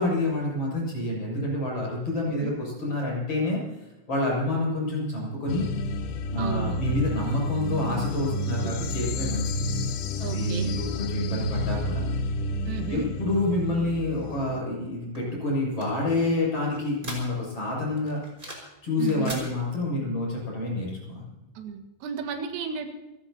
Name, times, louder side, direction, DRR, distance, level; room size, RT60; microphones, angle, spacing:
voice 1, 0.0-3.6 4.1-5.7 6.3-9.6 10.2-12.0 12.9-18.2 18.8-21.3, left 2 dB, 30° left, -3 dB, 8.3 m, -28 dB
sound 1, 5.5-14.6, left 1 dB, 85° left, 2.3 m, -30 dB
voice 2, 6.4-6.8 8.3-8.7 10.2-10.7 12.7-13.1 19.0-19.4 21.6-22.9, right 7 dB, 85° right, 4 dB, 4.5 m, -34 dB
sound 2, 15.1-17.6 18.0-18.8 19.0-19.5, right 1 dB, 10° right, 5.0 m, -41 dB
28.5 x 16.0 x 2.9 m, 1.0 s
omnidirectional pair, 5.9 m